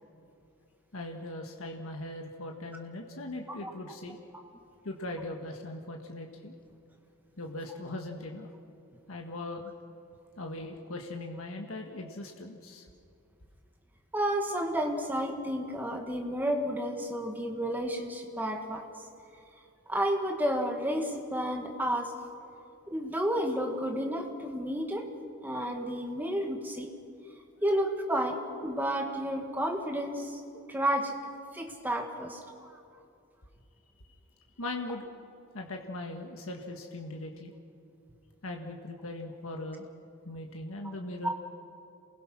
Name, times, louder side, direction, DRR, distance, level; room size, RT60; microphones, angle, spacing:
voice 1, 0.9-4.2 4.8-6.5 7.4-8.5 9.1-9.7 10.4-12.9 34.6-35.1 35.5-37.5 38.4-39.9 40.2-41.3, left 2 dB, 75° left, 2 dB, 1.6 m, -39 dB
voice 2, 14.1-18.8 19.9-22.1 22.9-25.1 25.4-26.9 27.6-30.4 30.7-31.1 31.5-32.7 41.2-41.3, equal, 10° right, 2 dB, 1.7 m, -31 dB
28.0 x 21.0 x 6.1 m, 2.6 s
head